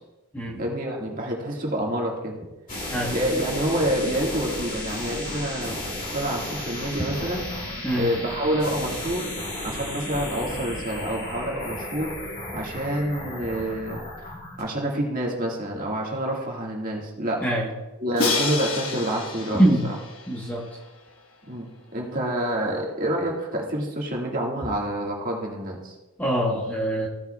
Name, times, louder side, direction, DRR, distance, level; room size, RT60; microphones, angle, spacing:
voice 1, 0.6-2.3 3.1-5.8 6.1-7.4 7.9-9.3 9.6-12.1 12.5-14.0 14.6-17.4 18.0-19.6 21.5-21.7 21.9-25.9, right 1 dB, 40° right, -1 dB, 1.6 m, -27 dB
sound 1, 2.7-14.6, left 1 dB, 35° left, 2.3 m, -34 dB
voice 2, 17.4-17.7 19.5-19.8 20.3-20.7 26.2-27.1, right 1 dB, 5° left, -2 dB, 0.9 m, -23 dB
Crash cymbal, 18.2-21.1, left 3 dB, 65° left, 1.2 m, -29 dB
15.5 x 7.1 x 2.2 m, 1.1 s
head